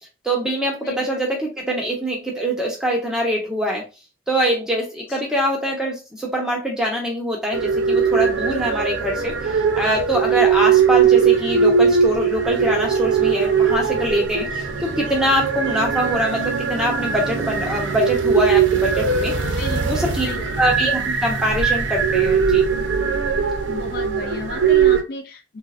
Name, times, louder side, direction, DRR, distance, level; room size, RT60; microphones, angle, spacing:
voice 1, 0.2-3.8 4.3-19.3 19.8-20.3 20.6-22.6, equal, 5° right, -1 dB, 0.8 m, -23 dB
sound 1, 7.5-25.0, right 6 dB, 85° right, 0.5 m, -20 dB
voice 2, 19.6-20.5 23.7-25.6, left 3 dB, 50° left, 4 dB, 0.3 m, -34 dB
3.7 x 2.1 x 2.4 m, 0.30 s
head